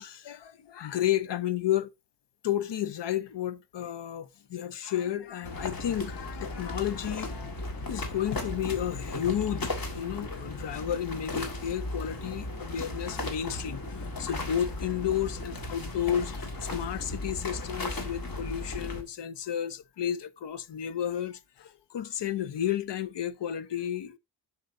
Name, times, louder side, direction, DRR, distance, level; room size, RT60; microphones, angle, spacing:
voice 1, 0.0-1.9 2.4-7.6 7.9-24.2, left 10 dB, 75° left, 0.7 m, -32 dB
sound 1, 5.4-19.0, left 2 dB, 55° left, 1.7 m, -36 dB
7.6 x 5.8 x 2.5 m
wide cardioid pair, 105°, 42 cm